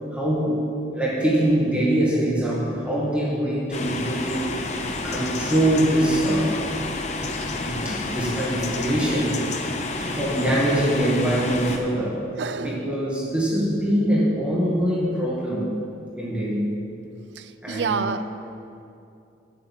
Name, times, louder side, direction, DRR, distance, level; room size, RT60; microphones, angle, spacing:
voice 1, 0.1-0.6 0.9-4.8 5.0-6.6 7.5-9.4 10.1-12.2 12.6-15.7 16.2-16.7 17.6-18.1, right 1 dB, 5° right, -7 dB, 2.0 m, -23 dB
sound 1, 3.7-11.8, left 3 dB, 40° left, 0.8 m, -30 dB
voice 2, 9.7-10.2 12.4-12.9 17.4-18.3, right 5 dB, 75° right, 11 dB, 0.5 m, -29 dB
8.5 x 8.2 x 7.3 m, 2.6 s
head